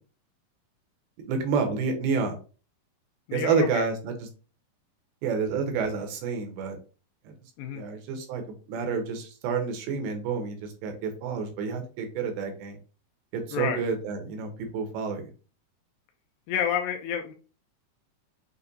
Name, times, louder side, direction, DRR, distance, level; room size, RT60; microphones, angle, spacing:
voice 1, 1.3-2.4 3.3-4.3 5.2-6.8 7.2-7.3 7.7-12.8 13.3-15.3, right 5 dB, 85° right, 5 dB, 2.8 m, -29 dB
voice 2, 3.3-3.9 7.6-7.8 13.5-13.8 16.5-17.3, left 8 dB, 80° left, 4 dB, 2.2 m, -29 dB
6.7 x 2.6 x 2.6 m, 0.36 s
omnidirectional pair, 4.4 m